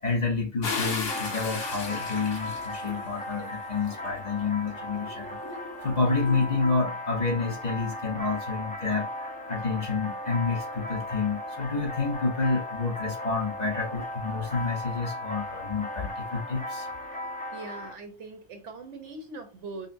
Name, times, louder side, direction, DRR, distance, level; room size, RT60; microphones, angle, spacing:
voice 1, 0.0-5.4 5.8-16.9, left 4 dB, 40° left, 0.8 m, -29 dB
sound 1, 0.6-3.2 3.9-6.7, left 4 dB, 85° left, 1.3 m, -36 dB
sound 2, 1.1-17.9, left 1 dB, 10° left, 0.4 m, -37 dB
voice 2, 17.5-19.9, right 3 dB, 70° right, 1.1 m, -41 dB
5.1 x 2.1 x 2.5 m
omnidirectional pair, 1.3 m